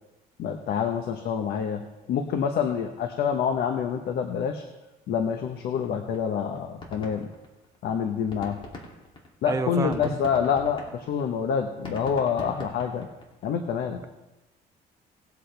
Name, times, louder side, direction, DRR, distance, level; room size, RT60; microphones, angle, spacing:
voice 1, 0.4-4.6 5.1-7.3 7.8-8.6 9.4-13.1 13.4-14.0, left 7 dB, 70° left, 5 dB, 1.1 m, -27 dB
sound 1, 5.8-5.9 6.1-6.3 6.6-7.9 8.2-13.4, left 2 dB, 30° left, 2.8 m, -42 dB
voice 2, 9.4-10.1, right 4 dB, 20° right, 9 dB, 0.5 m, -28 dB
20.0 x 8.0 x 3.4 m, 1.0 s
cardioid pair, 110°, 17 cm